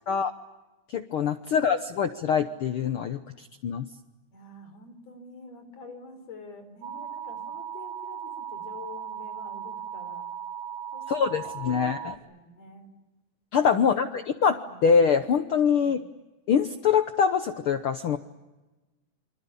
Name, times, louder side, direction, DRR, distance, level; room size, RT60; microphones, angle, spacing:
voice 1, 0.9-3.8 11.1-12.1 13.5-16.0 16.5-18.2, left 6 dB, 90° left, 8 dB, 1.1 m, -24 dB
voice 2, 4.3-10.3 10.9-12.9 13.7-14.0 14.7-14.9 15.8-15.9, left 3 dB, 50° left, 7 dB, 5.7 m, -47 dB
sound 1, 6.8-12.2, right 8 dB, 60° right, 1.7 m, -37 dB
28.5 x 26.0 x 7.0 m, 1.1 s
omnidirectional pair, 3.9 m